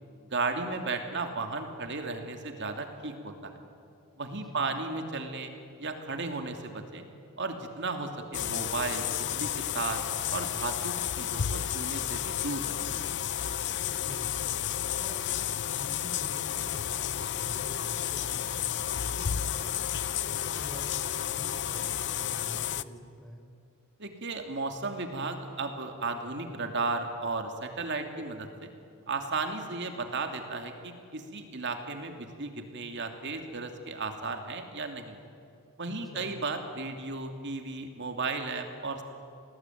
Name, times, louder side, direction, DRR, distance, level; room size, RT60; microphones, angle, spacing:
voice 1, 0.3-3.6 4.2-5.5 5.8-7.0 7.4-10.0 10.3-12.9 24.0-28.7 29.1-35.2 35.8-39.0, right 3 dB, 55° right, 5 dB, 2.8 m, -34 dB
voice 2, 4.1-4.7 13.8-19.8 20.2-23.4 35.9-36.3, equal, ahead, 2 dB, 4.5 m, -47 dB
sound 1, 8.3-22.8, left 10 dB, 55° left, 0.6 m, -32 dB
28.5 x 19.5 x 9.3 m, 2.4 s
head